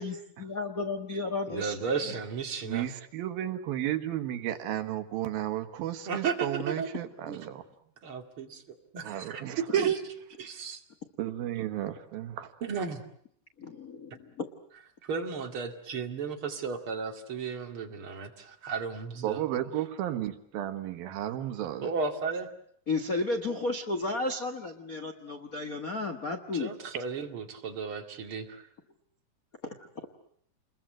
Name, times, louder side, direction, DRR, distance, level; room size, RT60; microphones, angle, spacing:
voice 1, 0.0-1.8 13.6-14.5 22.9-26.7 29.6-29.9, left 3 dB, 55° left, 6 dB, 0.9 m, -33 dB
voice 2, 1.5-2.9 6.1-6.5 6.8-6.9 7.3-7.5 8.0-8.6 8.9-10.0 10.4-10.8 12.6-13.0 15.0-19.4 21.8-22.5 26.5-28.7, right 6 dB, 40° right, 4 dB, 2.8 m, -33 dB
voice 3, 2.6-7.6 9.0-9.6 11.2-12.5 19.2-21.9, right 12 dB, 85° right, 9 dB, 3.3 m, -33 dB
29.0 x 22.0 x 7.7 m, 0.66 s
omnidirectional pair, 4.1 m